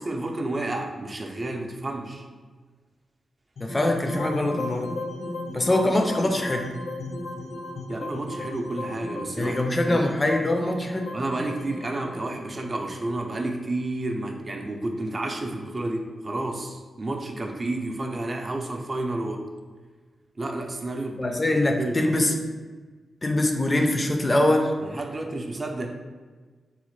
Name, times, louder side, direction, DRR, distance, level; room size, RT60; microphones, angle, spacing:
voice 1, 0.0-2.2 7.9-9.6 9.9-10.1 11.1-19.5 20.4-21.2 21.8-22.2 24.8-25.9, right 2 dB, 40° right, 2 dB, 0.4 m, -30 dB
sound 1, 3.6-13.8, left 2 dB, 75° left, 0.6 m, -35 dB
voice 2, 3.6-4.9 5.5-6.7 9.4-11.1 21.2-22.4 23.2-24.7, left 1 dB, 25° left, 3 dB, 0.4 m, -23 dB
4.0 x 2.1 x 3.1 m, 1.4 s
cardioid pair, 65°, 0 cm